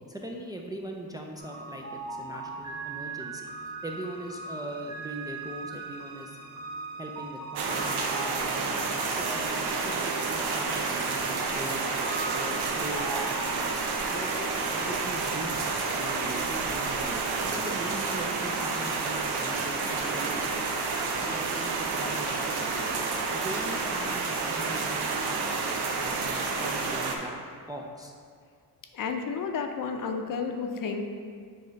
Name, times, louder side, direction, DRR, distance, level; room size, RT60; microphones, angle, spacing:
voice 1, 0.1-6.4 7.0-11.8 12.3-13.1 13.7-20.6 21.2-22.7 23.3-28.1, right 1 dB, 10° right, 0 dB, 0.4 m, -41 dB
sound 1, 1.4-13.4, right 3 dB, 50° right, 1.5 m, -40 dB
sound 2, 7.6-27.2, right 4 dB, 85° right, 0.9 m, -30 dB
voice 2, 28.9-31.0, left 5 dB, 55° left, 5 dB, 0.7 m, -31 dB
7.6 x 3.1 x 5.1 m, 2.2 s
cardioid pair, 135°, 38 cm